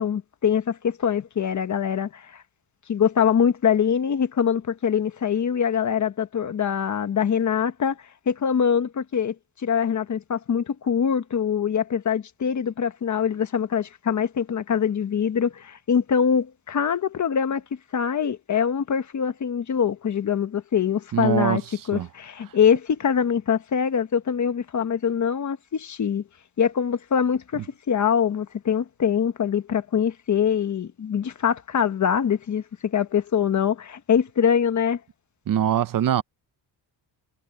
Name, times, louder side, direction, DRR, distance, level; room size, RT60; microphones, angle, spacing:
voice 1, 0.0-2.4 2.9-8.0 8.3-9.3 9.6-17.6 17.9-21.6 21.9-26.2 26.6-35.0, left 7 dB, 40° left, 1.4 m, -23 dB
voice 2, 21.1-22.1 35.5-36.2, right 10 dB, 50° right, 0.8 m, -23 dB
cardioid pair, 150°, 43 cm